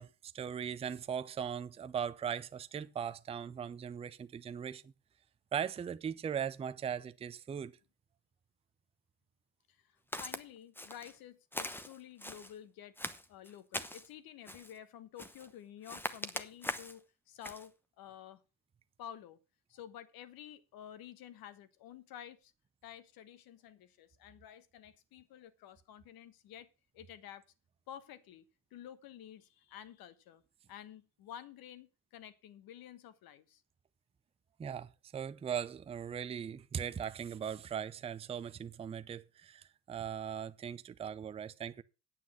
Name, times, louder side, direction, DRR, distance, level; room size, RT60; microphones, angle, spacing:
voice 1, 0.0-4.9 5.5-7.7 34.6-41.8, right 8 dB, 10° right, 0.5 m, -39 dB
voice 2, 9.7-13.0 13.3-18.4 19.0-19.4 19.7-22.5 22.8-26.7 26.9-27.4 27.9-30.4 30.7-33.6, left 10 dB, 45° left, 1.4 m, -51 dB
Walk footsteps, 10.1-10.4 10.8-11.2 11.5-12.5 13.0-14.1 14.5-14.8 15.2-15.5 15.8-17.0 17.4-17.7, left 1 dB, 5° left, 0.9 m, -41 dB
9.2 x 8.5 x 5.7 m
figure-of-eight pair, 65°, 49 cm